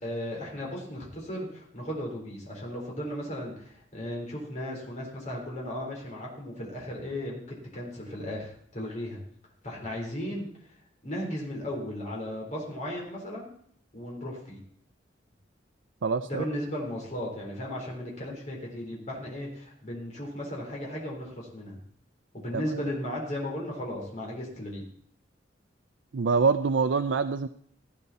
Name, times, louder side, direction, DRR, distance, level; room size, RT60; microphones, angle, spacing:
voice 1, 0.0-7.4 7.7-9.2 9.6-10.5 11.0-13.5 13.9-14.6 16.2-21.8 22.3-24.8, left 1 dB, 40° left, -3 dB, 3.8 m, -35 dB
voice 2, 16.0-16.5 22.5-22.6 26.1-27.5, right 5 dB, 75° right, 8 dB, 0.5 m, -25 dB
16.0 x 9.8 x 4.1 m, 0.62 s
head